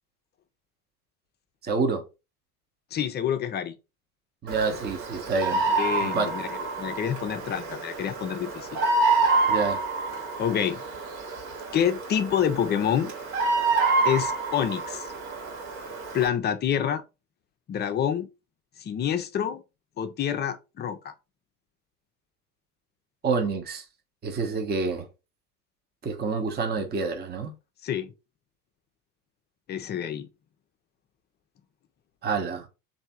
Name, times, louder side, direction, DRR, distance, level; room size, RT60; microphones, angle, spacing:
voice 1, 1.6-2.0 4.4-5.6 6.0-6.3 9.5-9.8 23.2-23.8 24.2-25.0 26.0-27.5 32.2-32.7, right 4 dB, 20° right, 0.9 m, -27 dB
voice 2, 2.9-3.8 5.5-8.8 10.4-10.8 11.7-13.1 14.0-15.1 16.1-17.0 17.7-18.3 18.8-19.6 20.0-21.1 27.8-28.1 29.7-30.3, left 9 dB, 25° left, 0.5 m, -27 dB
Bird vocalization bird call bird song, 4.5-16.3, right 3 dB, 60° right, 1.7 m, -28 dB
3.3 x 2.7 x 4.2 m
hypercardioid pair, 80°, 46 cm